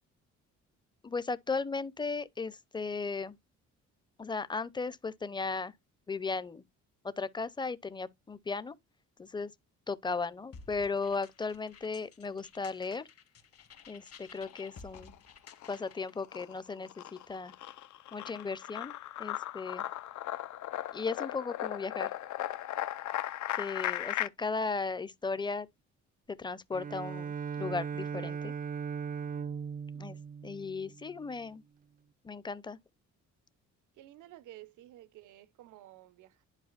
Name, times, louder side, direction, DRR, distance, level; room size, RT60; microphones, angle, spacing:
voice 1, 1.0-3.4 4.2-5.7 6.1-6.6 7.0-8.7 9.2-9.5 9.9-13.0 13.9-15.1 15.7-17.5 18.1-19.8 20.9-22.1 23.6-25.7 26.4-28.5 30.0-30.2 30.4-31.6 32.2-32.8, left 4 dB, 15° left, 0.6 m, -36 dB
sound 1, 10.5-16.2, left 5 dB, 50° left, 1.6 m, -54 dB
sound 2, 14.3-15.1 15.5-24.3, left 13 dB, 70° left, 0.7 m, -37 dB
Bowed string instrument, 26.7-31.4, right 6 dB, 30° right, 0.4 m, -38 dB
voice 2, 33.9-36.5, right 14 dB, 85° right, 0.8 m, -52 dB
10.5 x 4.9 x 2.5 m
cardioid pair, 90°, 30 cm